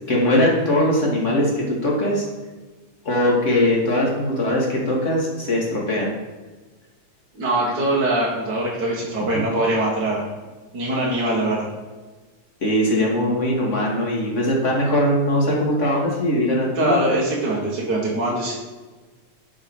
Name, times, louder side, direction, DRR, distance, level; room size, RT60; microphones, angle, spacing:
voice 1, 0.1-2.3 3.0-6.1 9.3-9.4 12.6-17.0, left 1 dB, 25° left, -2 dB, 2.3 m, -20 dB
voice 2, 7.3-10.3 10.7-11.7 16.7-18.6, right 1 dB, 40° right, -5 dB, 2.0 m, -22 dB
10.5 x 5.9 x 4.7 m, 1.3 s
omnidirectional pair, 3.3 m